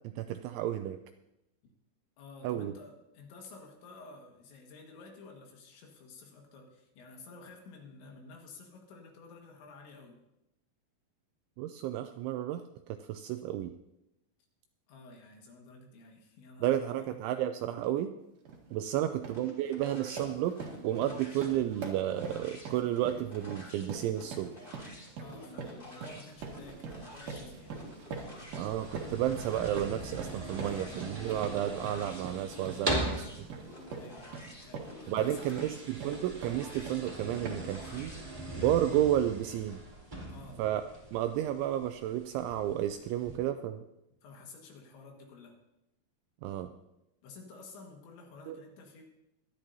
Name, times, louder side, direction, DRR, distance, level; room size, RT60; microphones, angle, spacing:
voice 1, 0.2-1.0 2.4-2.7 11.6-12.6 13.1-13.7 16.6-18.1 18.7-20.6 20.8-24.5 28.6-33.3 35.1-38.1 38.6-39.8 40.6-40.8 41.1-43.8 46.4-46.7 48.5-48.6, right 12 dB, 85° right, 8 dB, 2.7 m, -32 dB
voice 2, 2.2-10.2 14.9-17.2 18.9-19.2 25.2-27.8 33.9-35.6 40.3-40.6 44.2-45.6 47.2-49.0, left 3 dB, 70° left, 1 dB, 3.8 m, -51 dB
sound 1, 18.4-18.6 19.0-19.5 19.8-37.1 37.4-37.8, right 4 dB, 55° right, 2.6 m, -43 dB
sound 2, 19.3-38.3, left 1 dB, 20° left, 1.5 m, -51 dB
sound 3, 26.3-43.4, right 1 dB, 15° right, 1.8 m, -42 dB
23.5 x 11.0 x 2.7 m, 0.88 s
omnidirectional pair, 5.8 m